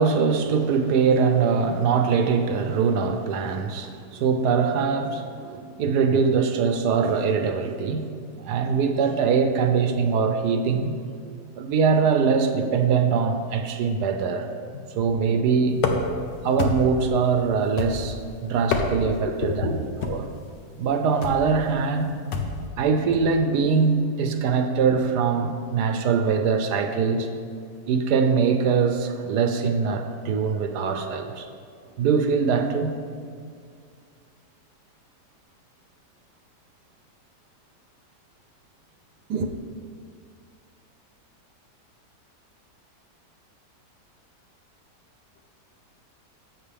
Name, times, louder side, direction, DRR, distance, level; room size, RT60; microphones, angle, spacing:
voice 1, 0.0-8.1 8.4-11.0 11.6-14.5 14.9-15.9 16.4-19.7 20.1-20.3 20.8-22.2 22.8-27.3 27.9-31.5 32.0-33.0 39.3-39.5, right 5 dB, 75° right, 6 dB, 1.3 m, -22 dB
voice 2, 14.7-15.0 16.2-16.3 19.1-19.8 45.4-45.5, left 5 dB, 60° left, 3 dB, 0.7 m, -31 dB
sound 1, 15.8-16.2 16.6-17.1 17.8-18.2 18.6-19.2 20.0-20.3 21.2-21.5 22.3-22.6, left 4 dB, 80° left, 1.5 m, -27 dB
12.0 x 8.1 x 3.4 m, 2.2 s
omnidirectional pair, 1.8 m